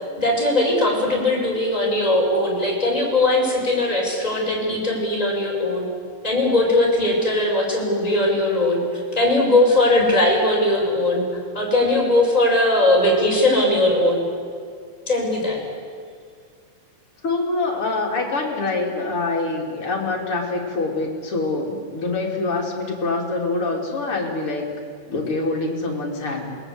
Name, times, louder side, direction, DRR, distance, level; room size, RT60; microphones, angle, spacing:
voice 1, 0.2-5.9 6.2-8.8 9.1-11.2 11.5-14.2 15.1-15.6, left 1 dB, 10° left, -3 dB, 6.1 m, -19 dB
voice 2, 17.2-24.7 25.1-26.4, left 3 dB, 40° left, -1 dB, 4.2 m, -25 dB
27.5 x 20.5 x 8.2 m, 2.1 s
omnidirectional pair, 3.7 m